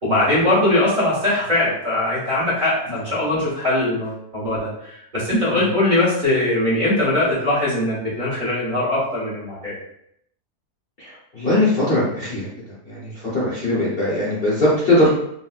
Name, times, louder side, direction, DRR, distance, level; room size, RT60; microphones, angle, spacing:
voice 1, 0.0-9.7, left 1 dB, 35° right, -8 dB, 1.1 m, -21 dB
voice 2, 11.0-15.1, left 1 dB, 45° left, -7 dB, 0.8 m, -21 dB
4.0 x 2.2 x 2.3 m, 0.73 s
omnidirectional pair, 1.6 m